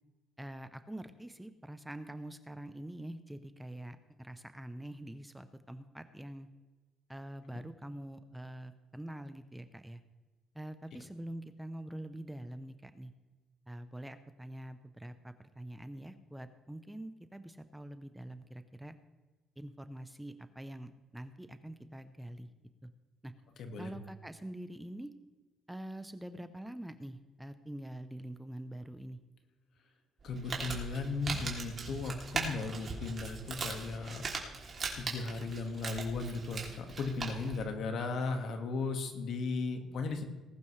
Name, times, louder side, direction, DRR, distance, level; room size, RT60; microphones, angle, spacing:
voice 1, 0.4-6.5 7.1-10.0 10.5-13.1 13.7-18.9 19.6-22.5 22.8-22.9 23.2-23.3 23.8-25.1 25.7-29.2, right 1 dB, 5° right, 10 dB, 0.7 m, -45 dB
voice 2, 23.6-24.0 30.2-34.2 34.9-40.2, left 3 dB, 65° left, 5 dB, 1.9 m, -36 dB
Crumpling crinkling, 30.2-37.6, right 4 dB, 40° right, 3.0 m, -40 dB
19.5 x 11.0 x 3.3 m, 1.2 s
cardioid pair, 105°, 0 cm